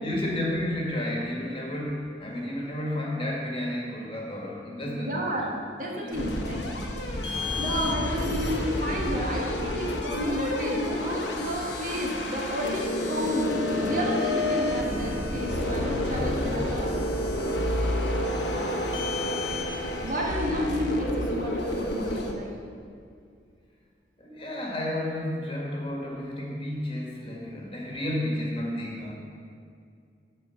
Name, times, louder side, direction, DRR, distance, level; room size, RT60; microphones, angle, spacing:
voice 1, 0.0-5.3 5.9-6.3 16.0-16.6 24.2-29.1, left 1 dB, 30° left, -2 dB, 1.6 m, -32 dB
voice 2, 5.0-6.6 7.5-17.1 17.4-17.8 18.4-18.8 20.0-22.5, equal, 50° right, -2 dB, 1.5 m, -31 dB
sound 1, 6.1-22.3, left 1 dB, 70° left, 1.1 m, -29 dB
10.5 x 4.3 x 7.0 m, 2.3 s
head